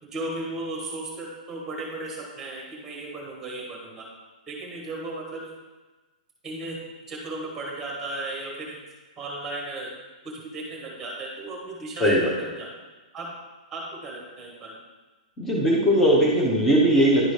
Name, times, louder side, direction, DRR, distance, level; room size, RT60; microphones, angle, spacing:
voice 1, 0.0-4.1 4.5-5.5 6.4-8.8 9.2-9.9 10.2-12.1 12.6-12.7 13.1-13.3 13.7-14.7, right 2 dB, 10° right, -2 dB, 1.4 m, -35 dB
voice 2, 12.0-12.3 15.4-17.3, equal, 10° left, -3 dB, 0.9 m, -19 dB
10.5 x 3.9 x 3.3 m, 1.2 s
hypercardioid pair, 165°, 5 cm